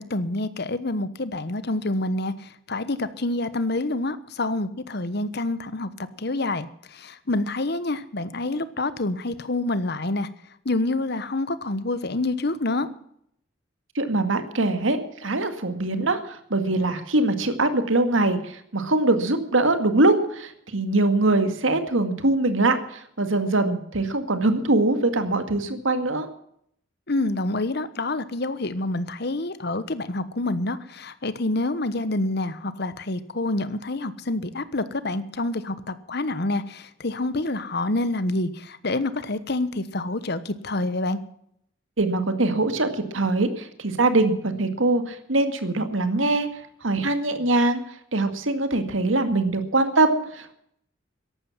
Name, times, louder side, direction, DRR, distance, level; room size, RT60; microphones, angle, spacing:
voice 1, 0.0-5.9 6.2-10.3 10.6-12.9 27.1-41.2, left 2 dB, 55° left, 14 dB, 1.2 m, -27 dB
voice 2, 14.0-26.3 42.0-46.5 46.8-47.8 48.1-50.5, right 2 dB, 85° right, 9 dB, 2.1 m, -23 dB
14.0 x 12.0 x 7.4 m, 0.69 s
head